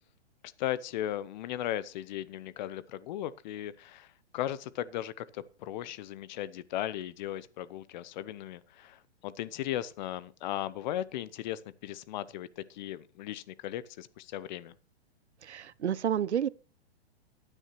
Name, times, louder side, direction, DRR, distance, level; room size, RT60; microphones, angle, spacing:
voice 1, 0.6-14.7, left 12 dB, 45° left, 0.8 m, -37 dB
voice 2, 15.4-16.5, right 9 dB, 90° right, 0.7 m, -30 dB
15.0 x 10.0 x 3.0 m
hypercardioid pair, 130°, 33 cm